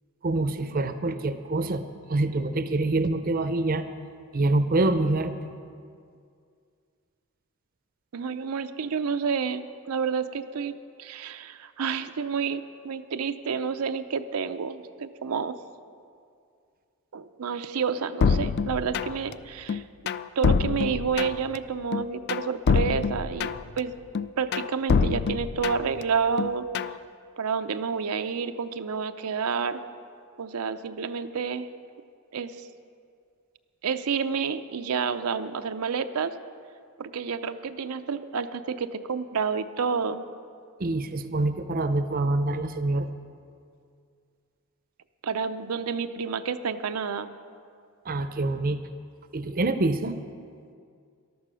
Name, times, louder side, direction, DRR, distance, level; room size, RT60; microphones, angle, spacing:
voice 1, 0.2-3.8 4.3-5.3 40.8-43.1 48.1-48.8 49.3-50.2, right 2 dB, 40° right, 10 dB, 0.6 m, -26 dB
voice 2, 8.1-15.6 17.1-19.8 20.4-23.9 24.4-26.7 27.4-29.8 30.4-31.7 32.3-32.7 33.8-36.3 37.0-40.3 45.2-47.3, right 6 dB, 90° right, 9 dB, 0.6 m, -29 dB
sound 1, 18.2-19.3 19.7-21.6 21.9-23.8 24.1-26.0 26.4-27.0, left 5 dB, 50° left, 0.3 m, -25 dB
14.0 x 12.0 x 6.2 m, 2.3 s
head